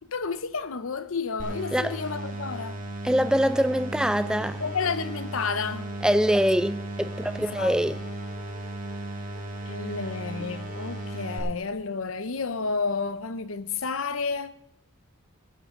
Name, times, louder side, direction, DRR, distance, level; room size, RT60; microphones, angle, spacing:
voice 1, 0.1-2.8 4.6-5.9 7.6-7.7 9.7-14.5, left 5 dB, 80° left, 0.8 m, -31 dB
sound 1, 1.4-11.4, right 2 dB, 40° right, 2.1 m, -36 dB
voice 2, 3.0-4.6 6.0-8.0, equal, 5° right, 0.4 m, -24 dB
sound 2, 3.2-11.5, right 3 dB, 75° right, 3.8 m, -51 dB
16.0 x 11.5 x 3.8 m
head